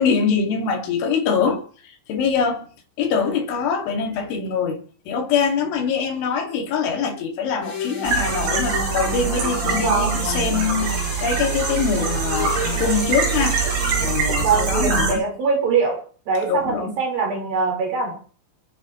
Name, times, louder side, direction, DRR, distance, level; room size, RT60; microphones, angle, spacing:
voice 1, 0.0-2.7 3.0-4.8 5.1-13.6 14.0-15.3 16.5-17.0, left 6 dB, 80° left, 4.9 m, -23 dB
sound 1, 7.6-14.7, left 4 dB, 50° left, 6.3 m, -32 dB
sound 2, 8.0-15.1, right 5 dB, 80° right, 9.9 m, -24 dB
voice 2, 9.7-10.1 14.4-16.0 16.3-18.1, right 5 dB, 50° right, 6.2 m, -22 dB
29.5 x 10.5 x 3.2 m
omnidirectional pair, 5.4 m